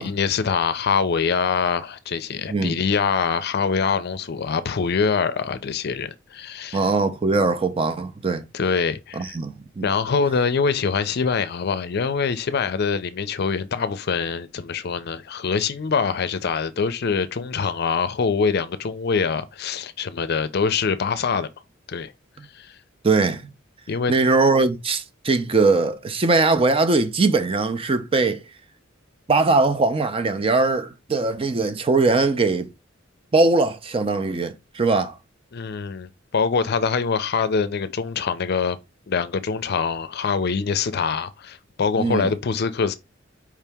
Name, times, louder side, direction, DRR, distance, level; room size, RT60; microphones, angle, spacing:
voice 1, 0.0-6.8 8.5-9.4 9.8-21.5 21.9-22.1 22.5-22.8 23.9-24.1 35.5-38.8 39.1-42.9, left 5 dB, 55° left, 0.5 m, -24 dB
voice 2, 6.7-8.4 9.2-9.9 23.0-23.5 24.1-28.4 29.3-32.7 33.3-35.2 42.0-42.3, right 3 dB, 30° right, 0.5 m, -21 dB
4.8 x 2.8 x 3.4 m
head